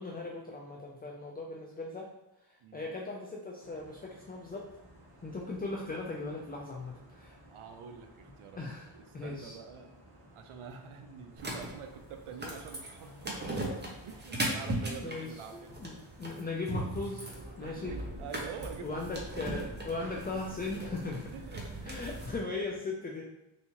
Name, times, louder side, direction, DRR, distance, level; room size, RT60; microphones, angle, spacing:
voice 1, 0.0-2.1 2.5-4.7 5.2-7.4 8.6-9.6 15.0-17.3 17.6-17.9 18.8-21.3 21.8-23.4, left 3 dB, 20° left, -1 dB, 0.3 m, -38 dB
voice 2, 2.6-3.0 7.5-8.6 8.9-9.9 10.3-13.4 14.0-15.7 16.0-16.1 17.6-19.2 21.3-21.7, right 6 dB, 85° right, 6 dB, 0.6 m, -46 dB
sound 1, 3.6-22.8, equal, 50° right, 1.0 m, -56 dB
sound 2, 11.4-22.4, right 1 dB, 20° right, 0.7 m, -38 dB
3.4 x 2.7 x 2.9 m, 0.93 s
wide cardioid pair, 90°, 48 cm